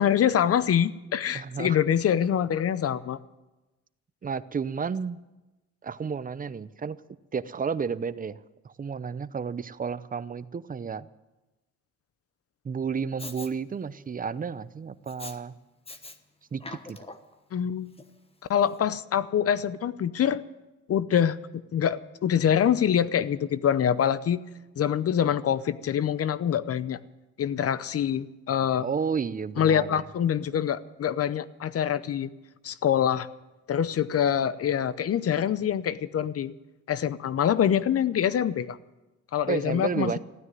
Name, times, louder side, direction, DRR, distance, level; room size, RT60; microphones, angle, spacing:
voice 1, 0.0-3.2 17.5-17.9 18.5-20.4 20.9-21.4 21.7-24.4 24.8-27.0 27.4-28.9 29.6-32.3 32.6-33.3 33.7-36.5 36.9-38.8 39.3-40.2, left 9 dB, 50° left, 16 dB, 0.7 m, -25 dB
voice 2, 1.3-1.8 4.2-5.2 5.8-7.0 7.3-11.1 12.6-15.5 16.5-17.0 28.8-30.0 39.5-40.2, right 6 dB, 30° right, 15 dB, 0.6 m, -32 dB
Respiratory sounds, 13.2-13.5 15.1-15.4 15.8-16.2 16.5-17.3 18.0-18.1, left 2 dB, 20° left, 1.2 m, -42 dB
15.0 x 9.7 x 9.2 m, 1.1 s
cardioid pair, 90°, 30 cm